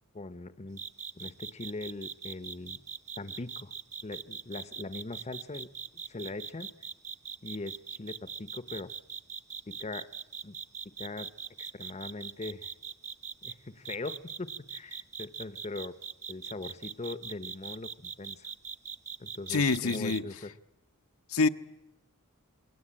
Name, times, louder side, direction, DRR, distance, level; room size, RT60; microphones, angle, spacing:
voice 1, 0.1-0.8 1.1-2.8 3.2-3.7 4.0-5.7 6.1-6.7 7.4-8.9 9.7-10.1 10.4-10.6 11.0-11.3 11.6-12.7 13.4-15.9 16.3-18.5 19.2-20.5, left 2 dB, 30° left, 13 dB, 0.9 m, -41 dB
sound 1, 0.8-13.5 13.8-20.2, right 6 dB, 35° right, 1.2 m, -41 dB
voice 2, 19.5-20.2 21.3-21.5, left 4 dB, 65° left, 8 dB, 0.9 m, -26 dB
28.0 x 22.5 x 8.8 m, 0.96 s
head